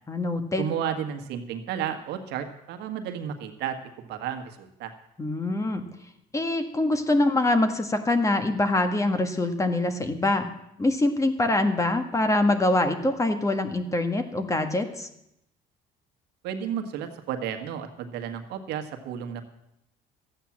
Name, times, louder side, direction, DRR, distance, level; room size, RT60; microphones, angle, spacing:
voice 1, 0.1-0.7 5.2-5.8 6.3-10.5 10.8-15.1, left 2 dB, 20° left, 7 dB, 1.6 m, -24 dB
voice 2, 0.6-4.9 16.4-19.4, right 8 dB, 85° right, 6 dB, 1.7 m, -32 dB
13.5 x 9.1 x 7.4 m, 0.80 s
cardioid pair, 110°, 17 cm